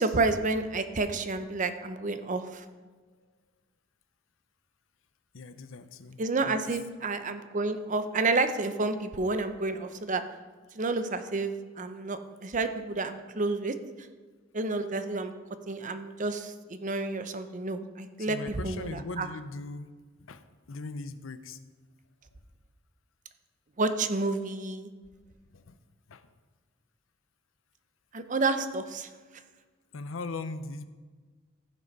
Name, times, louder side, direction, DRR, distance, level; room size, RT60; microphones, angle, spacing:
voice 1, 0.0-2.6 6.2-10.2 10.7-13.7 14.5-15.3 15.7-19.3 23.8-24.9 28.1-29.1, right 3 dB, 40° right, 10 dB, 0.7 m, -30 dB
voice 2, 5.3-6.8 18.2-19.9 20.2-21.6 25.5-25.8 26.1-26.3 29.9-30.9, left 3 dB, 80° left, 12 dB, 0.7 m, -40 dB
15.0 x 6.2 x 5.4 m, 1.4 s
head